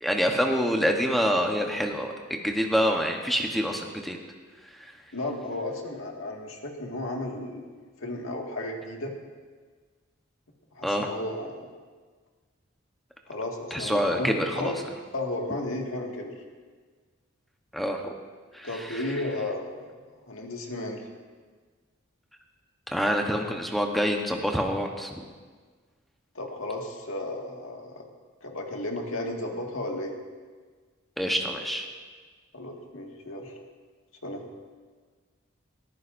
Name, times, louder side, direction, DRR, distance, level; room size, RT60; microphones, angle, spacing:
voice 1, 0.0-4.2 10.8-11.1 13.7-14.7 17.7-18.1 18.5-19.0 22.9-25.2 31.2-31.9, equal, ahead, 2 dB, 0.9 m, -26 dB
voice 2, 5.1-7.7 8.0-9.1 10.8-11.7 13.3-14.8 15.1-16.4 18.6-19.9 20.3-21.1 26.4-28.0 28.4-30.1 32.5-33.6 34.2-34.5, left 1 dB, 85° left, 1 dB, 1.9 m, -34 dB
21.0 x 14.5 x 2.6 m, 1.5 s
head